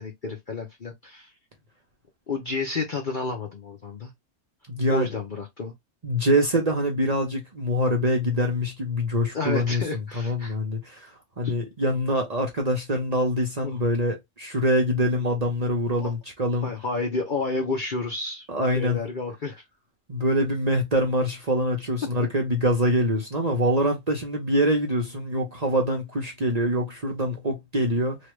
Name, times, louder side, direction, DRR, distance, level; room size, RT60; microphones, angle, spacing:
voice 1, 0.0-1.3 2.3-4.1 4.9-5.7 9.3-10.6 11.4-11.5 13.6-13.8 15.9-16.1 16.6-18.5 18.7-19.6, left 3 dB, 45° left, 0.7 m, -30 dB
voice 2, 4.7-5.1 6.0-9.8 10.1-11.1 11.4-16.7 18.5-19.0 20.1-28.2, equal, 40° right, 0.6 m, -24 dB
3.3 x 2.4 x 3.1 m
omnidirectional pair, 1.6 m